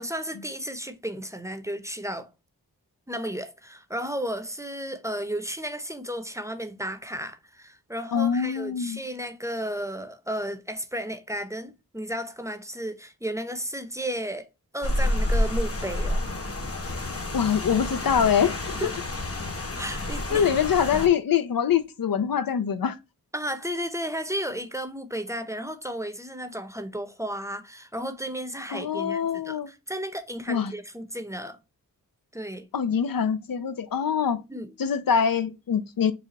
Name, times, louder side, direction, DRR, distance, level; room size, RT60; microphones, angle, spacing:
voice 1, 0.0-2.3 3.1-14.5 14.7-16.2 18.7-18.9 19.8-20.6 23.3-31.6 32.3-32.7 34.5-34.7, equal, 10° right, 0.7 m, -33 dB
voice 2, 8.1-9.0 17.3-18.9 20.3-22.9 28.7-29.7 30.5-30.7 32.7-34.4 34.8-36.1, left 7 dB, 70° left, 0.6 m, -24 dB
Rain, 14.8-21.1, left 1 dB, 40° left, 1.0 m, -29 dB
4.1 x 2.3 x 4.0 m
cardioid pair, 50°, 36 cm